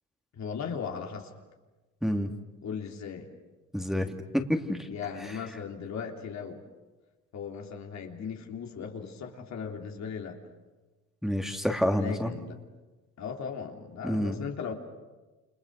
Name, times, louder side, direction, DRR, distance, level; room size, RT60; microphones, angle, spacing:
voice 1, 0.3-1.3 2.6-3.3 4.9-6.6 7.3-10.4 12.0-12.6 13.2-14.7, left 6 dB, 65° left, 2 dB, 3.4 m, -37 dB
voice 2, 3.7-4.1 4.3-4.8 5.2-5.3 11.2-12.3 14.0-14.4, equal, ahead, 3 dB, 2.6 m, -28 dB
29.0 x 27.5 x 6.6 m, 1.2 s
cardioid pair, 90°, 30 cm